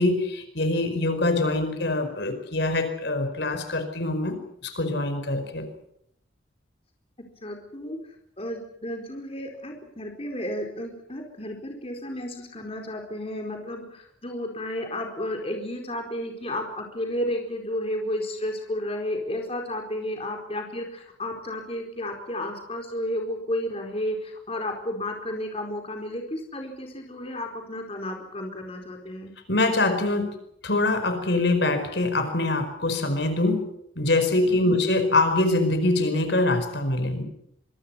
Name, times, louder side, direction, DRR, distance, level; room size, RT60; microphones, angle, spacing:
voice 1, 0.0-5.7 29.5-30.3 30.6-37.2, left 2 dB, 60° left, 8 dB, 4.9 m, -24 dB
voice 2, 7.4-8.0 8.4-29.3 34.5-34.7, left 1 dB, 30° left, 3 dB, 4.5 m, -32 dB
26.0 x 24.5 x 5.9 m, 0.73 s
head